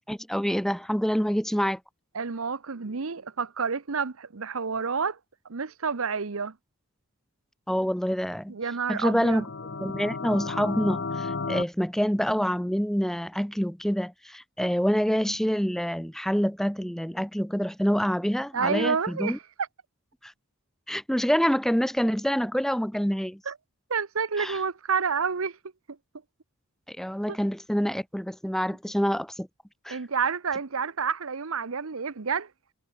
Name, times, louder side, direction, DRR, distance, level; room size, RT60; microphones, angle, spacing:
voice 1, 0.1-1.8 7.7-8.6 8.9-9.5 9.8-19.4 20.2-20.3 20.9-23.4 24.4-24.6 26.9-29.5 29.8-30.0, equal, ahead, 1.1 m, -26 dB
voice 2, 2.1-5.2 5.5-6.5 8.5-9.4 18.5-19.4 23.5-23.6 23.9-25.6 27.3-27.4 29.9-32.5, right 5 dB, 70° right, 0.9 m, -29 dB
sound 1, 9.1-11.6, left 4 dB, 55° left, 1.0 m, -33 dB
head